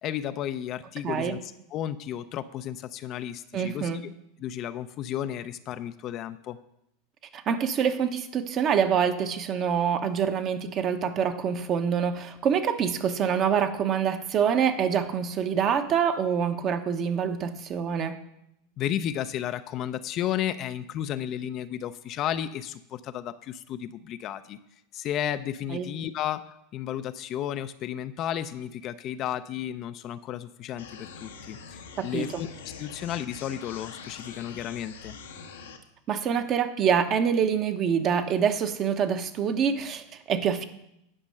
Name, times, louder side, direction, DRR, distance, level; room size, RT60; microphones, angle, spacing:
voice 1, 0.0-3.9 4.4-6.6 18.8-24.6 24.9-32.5 32.8-35.2, left 11 dB, 45° left, 12 dB, 0.5 m, -33 dB
voice 2, 1.0-1.4 3.5-4.0 7.3-18.2 25.7-25.9 32.1-32.4 36.1-40.6, right 7 dB, 40° right, 7 dB, 1.1 m, -26 dB
sound 1, 30.8-35.8, left 5 dB, 90° left, 1.1 m, -44 dB
10.0 x 5.3 x 6.5 m, 0.80 s
hypercardioid pair, 100°, 0 cm